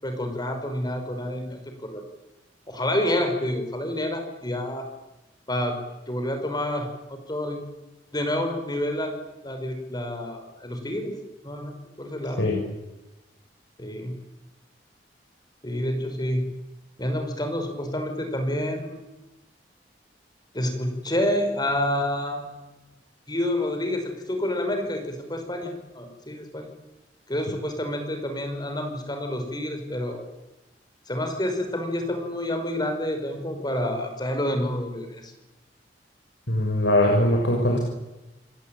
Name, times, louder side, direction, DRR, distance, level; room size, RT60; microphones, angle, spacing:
voice 1, 0.0-2.0 2.7-4.9 5.5-5.8 6.1-7.6 8.1-9.2 9.4-11.2 11.4-11.7 12.0-12.4 13.8-14.2 15.6-16.5 17.0-19.0 20.5-22.8 23.3-26.7 27.3-30.2 31.1-35.3, left 1 dB, 25° left, 6 dB, 5.3 m, -28 dB
voice 2, 36.5-37.8, left 1 dB, 85° left, -1 dB, 6.4 m, -21 dB
29.0 x 22.0 x 9.1 m, 1.0 s
head